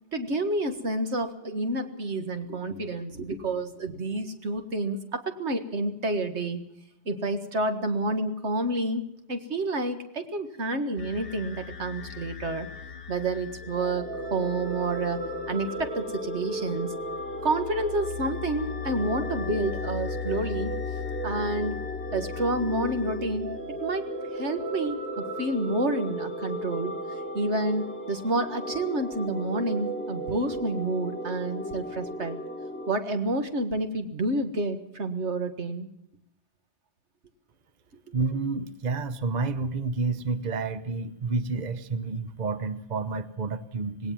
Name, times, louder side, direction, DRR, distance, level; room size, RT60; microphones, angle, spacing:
voice 1, 0.1-6.7 7.1-12.7 13.1-16.9 17.4-20.7 21.2-21.8 22.1-24.1 24.3-26.9 27.3-32.4 32.9-35.9, right 2 dB, 80° right, 7 dB, 2.0 m, -29 dB
sound 1, 11.0-24.1, left 9 dB, 55° left, 1.3 m, -39 dB
sound 2, 13.6-32.9, right 1 dB, 10° left, 2.9 m, -35 dB
voice 2, 38.1-44.1, right 4 dB, 40° right, 13 dB, 1.0 m, -30 dB
19.5 x 18.0 x 7.4 m, 0.77 s
omnidirectional pair, 1.1 m